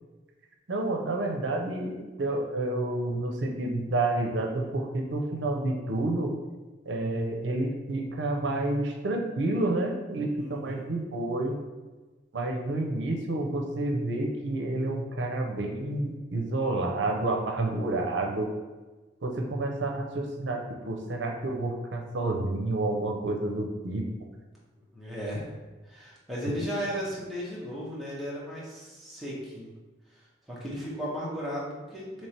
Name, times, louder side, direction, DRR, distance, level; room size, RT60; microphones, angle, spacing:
voice 1, 0.7-6.3 6.9-11.6 12.3-18.5 19.2-24.0, right 2 dB, 85° right, 2 dB, 0.6 m, -29 dB
voice 2, 10.4-10.9 24.9-25.5 25.9-29.7 30.5-32.3, equal, ahead, -7 dB, 0.9 m, -35 dB
3.2 x 3.1 x 4.3 m, 1.2 s
head